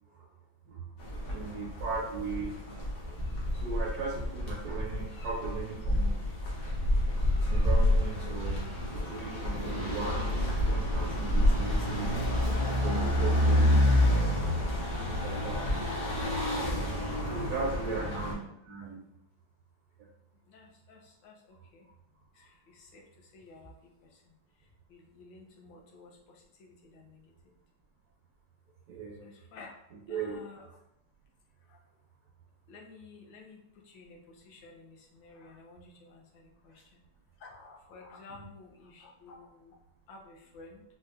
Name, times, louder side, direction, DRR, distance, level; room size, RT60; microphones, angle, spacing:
sound 1, 1.0-18.3, left 1 dB, 55° left, 1.2 m, -28 dB
voice 1, 1.2-2.5 3.5-6.3 7.5-12.1 12.8-14.0 15.0-15.8 17.3-19.1 28.9-29.3 29.9-30.4 38.3-38.5, right 4 dB, 75° right, -2 dB, 0.9 m, -38 dB
voice 2, 17.3-17.8 20.5-21.3 21.7-21.8 22.4-23.0 23.3-23.7 24.9-27.2 29.2-29.8 30.1-30.7 31.7-31.8 32.7-33.6 33.9-37.0 37.4-39.8 40.1-40.8, left 3 dB, 75° left, 0 dB, 1.3 m, -52 dB
4.2 x 2.2 x 2.4 m, 0.83 s
omnidirectional pair, 2.1 m